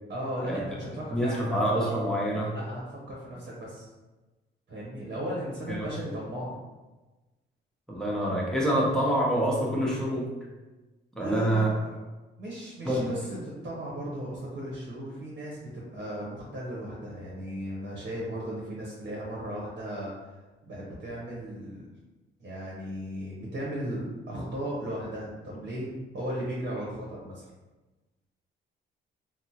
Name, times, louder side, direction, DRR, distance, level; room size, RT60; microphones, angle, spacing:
voice 1, 0.1-1.9 2.5-2.8 3.1-3.8 4.7-6.6 11.2-12.0 12.4-20.4 20.6-21.9 22.4-27.4, equal, 55° right, -4 dB, 0.9 m, -36 dB
voice 2, 1.1-2.5 5.7-5.9 7.9-10.3 11.1-11.7 12.8-13.1, right 1 dB, 5° left, -5 dB, 0.9 m, -26 dB
3.5 x 2.0 x 2.8 m, 1.2 s
cardioid pair, 90°, 20 cm